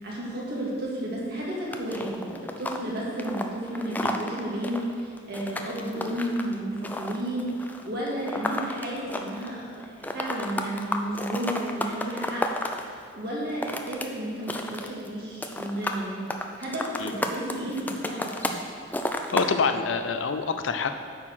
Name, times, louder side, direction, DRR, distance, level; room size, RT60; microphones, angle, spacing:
voice 1, 0.0-12.4 12.7-16.3 16.6-18.6, right 1 dB, 55° right, -5 dB, 2.2 m, -32 dB
sound 1, 1.7-9.6 9.8-12.8 13.4-14.1 14.3-15.1 15.4-16.0 16.3-18.6 18.9-19.5, left 1 dB, 10° left, 0.4 m, -32 dB
voice 2, 19.3-20.9, left 5 dB, 80° left, 8 dB, 0.5 m, -26 dB
9.5 x 4.7 x 6.1 m, 2.1 s
head